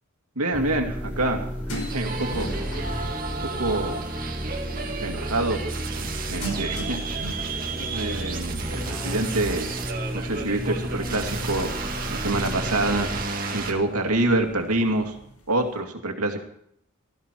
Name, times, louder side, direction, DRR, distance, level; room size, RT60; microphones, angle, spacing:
voice 1, 0.4-1.5 1.7-2.5 3.4-4.0 5.0-5.6 6.3-7.4 7.9-9.7 10.1-11.7 12.1-13.1 13.5-15.1 15.5-16.4, right 2 dB, 85° right, 3 dB, 2.5 m, -26 dB
sound 1, 0.5-13.3, equal, 5° right, 0.9 m, -33 dB
sound 2, 0.9-15.7, right 1 dB, 80° left, 4.9 m, -41 dB
sound 3, 1.9-13.7, right 4 dB, 40° right, 1.9 m, -33 dB
17.0 x 15.0 x 4.6 m, 0.69 s
head